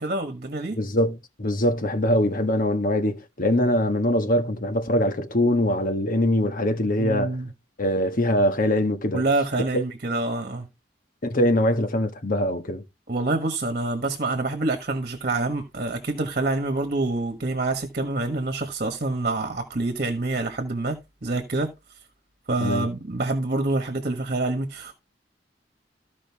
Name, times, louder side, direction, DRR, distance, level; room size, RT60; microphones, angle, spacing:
voice 1, 0.0-0.8 7.0-7.5 9.1-10.7 13.1-21.7 22.5-24.9, right 2 dB, 50° right, 1.4 m, -26 dB
voice 2, 0.8-7.4 7.8-9.2 9.7-9.8 11.2-12.8 22.6-22.8, left 1 dB, 50° left, 1.5 m, -23 dB
14.0 x 5.1 x 3.6 m
head